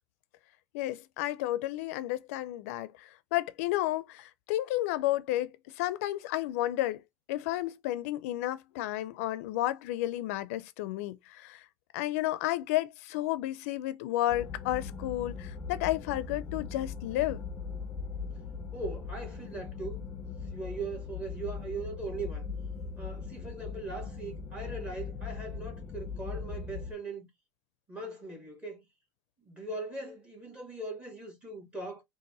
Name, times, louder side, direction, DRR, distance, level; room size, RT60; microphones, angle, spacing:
voice 1, 0.7-7.0 7.3-11.6 11.9-17.4, left 15 dB, 85° left, 0.4 m, -32 dB
sound 1, 14.3-26.9, left 5 dB, 25° left, 0.7 m, -40 dB
voice 2, 18.7-20.0 20.5-22.4 23.0-27.3 27.9-28.8 29.4-32.0, right 3 dB, 15° right, 1.9 m, -40 dB
3.9 x 2.5 x 2.7 m
cardioid pair, 155°, 8 cm